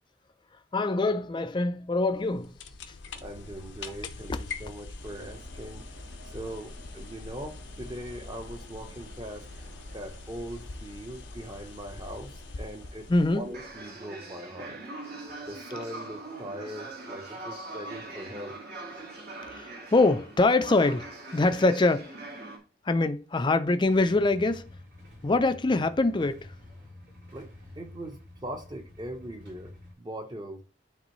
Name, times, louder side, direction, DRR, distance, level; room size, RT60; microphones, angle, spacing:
voice 1, 0.7-2.5 4.3-4.4 13.1-13.4 19.5-22.2 22.9-24.7 25.2-26.5, left 2 dB, 25° left, 0.4 m, -24 dB
sound 1, 2.1-13.9, left 3 dB, 75° left, 0.6 m, -43 dB
voice 2, 3.2-5.9 6.2-9.5 9.9-13.1 13.3-14.8 15.4-18.6 27.3-30.6, right 1 dB, 25° right, 0.9 m, -41 dB
sound 2, 5.0-22.6, right 2 dB, 55° right, 1.9 m, -44 dB
Motorcycle / Engine starting / Idling, 23.8-29.9, left 1 dB, 75° right, 3.7 m, -49 dB
9.8 x 3.6 x 3.1 m
head